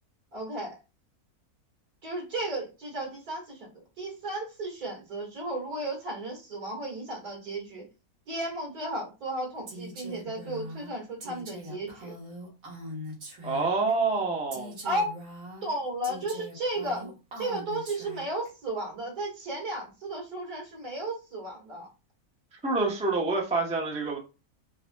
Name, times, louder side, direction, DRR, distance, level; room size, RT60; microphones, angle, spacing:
voice 1, 0.3-0.8 2.0-7.9 8.3-12.1 14.8-15.1 15.6-17.1 17.4-21.9, right 1 dB, 85° right, -2 dB, 2.3 m, -34 dB
Female speech woman speaking, 9.7-13.9 14.5-18.5, equal, 70° right, 1.7 m, -42 dB
voice 2, 13.4-14.7 22.6-24.2, right 3 dB, 10° right, 0 dB, 0.4 m, -27 dB
4.7 x 2.8 x 2.2 m, 0.29 s
omnidirectional pair, 1.6 m